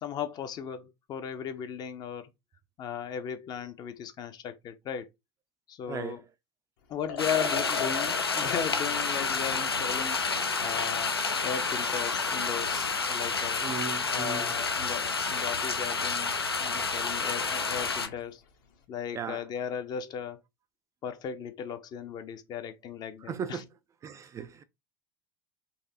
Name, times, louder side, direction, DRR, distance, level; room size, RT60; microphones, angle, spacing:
voice 1, 0.0-2.3 2.8-5.1 5.7-6.2 6.9-10.2 10.6-11.1 11.4-13.7 14.1-18.4 18.9-20.4 21.0-23.6, left 8 dB, 35° left, 0.6 m, -36 dB
voice 2, 5.9-6.2 13.6-14.6 19.1-19.4 23.3-23.7 24.0-24.6, right 6 dB, 25° right, 0.4 m, -37 dB
Liquid, 7.0-18.3, left 5 dB, 55° left, 0.9 m, -42 dB
sound 1, 7.2-18.1, left 4 dB, 85° left, 0.4 m, -30 dB
4.1 x 2.6 x 2.7 m
figure-of-eight pair, 75°, 13 cm